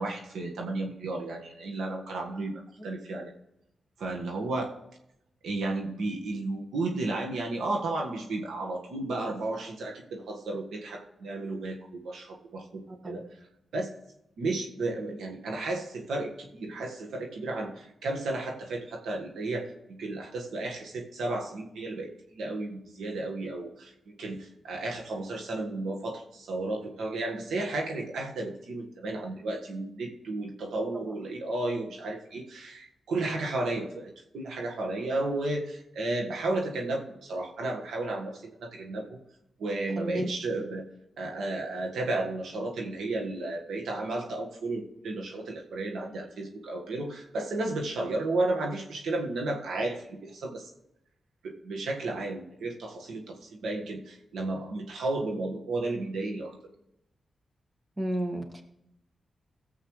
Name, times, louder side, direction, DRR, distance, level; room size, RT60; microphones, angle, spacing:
voice 1, 0.0-3.3 4.0-4.8 5.4-13.2 13.7-13.9 14.4-22.1 22.3-23.9 24.2-39.2 39.6-40.8 41.2-50.7 51.4-56.6, right 2 dB, 85° right, 1 dB, 1.7 m, -33 dB
voice 2, 12.9-13.2 30.9-31.1 40.0-40.3 58.0-58.6, right 1 dB, 25° right, 4 dB, 1.8 m, -32 dB
17.0 x 8.0 x 3.3 m, 0.85 s
cardioid pair, 60°, 0 cm